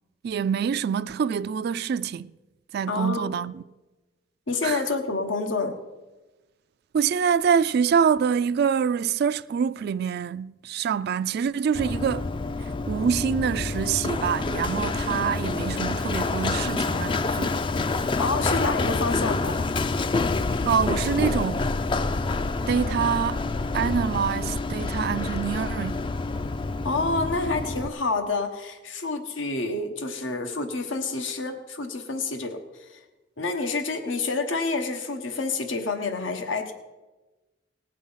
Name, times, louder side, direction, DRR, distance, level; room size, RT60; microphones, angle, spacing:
voice 1, 0.2-2.3 2.7-3.6 4.6-4.8 6.9-12.3 12.9-17.5 20.6-21.6 22.7-23.4 23.7-26.0, right 7 dB, 55° right, 0.3 m, -25 dB
voice 2, 2.9-3.3 4.5-5.8 18.2-19.6 26.8-33.0 33.4-36.7, left 3 dB, 85° left, 1.2 m, -28 dB
Run, 11.7-27.9, left 3 dB, 25° left, 0.4 m, -27 dB
18.5 x 7.4 x 5.6 m
head